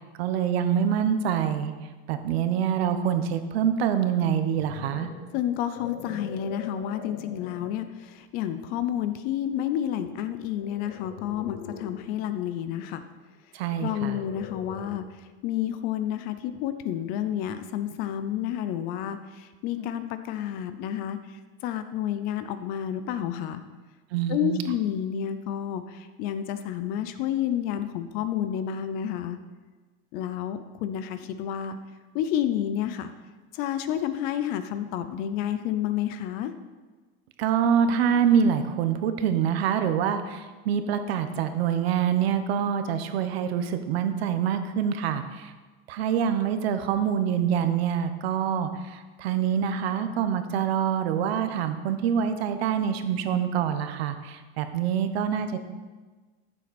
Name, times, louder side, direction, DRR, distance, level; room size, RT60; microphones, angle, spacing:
voice 1, 0.2-1.7 2.1-5.1 13.5-14.2 24.1-24.6 37.4-45.5 45.9-55.6, right 8 dB, 80° right, 9 dB, 1.1 m, -25 dB
sound 1, 4.2-7.9 8.5-8.8 10.5-12.1 13.7-15.2, left 7 dB, 75° left, 1.5 m, -43 dB
voice 2, 5.3-13.0 13.8-23.6 24.3-29.4 30.1-31.8 32.1-33.1 33.5-36.5, left 10 dB, 30° left, 11 dB, 0.4 m, -30 dB
14.0 x 7.5 x 4.2 m, 1.3 s
supercardioid pair, 180°, 31 cm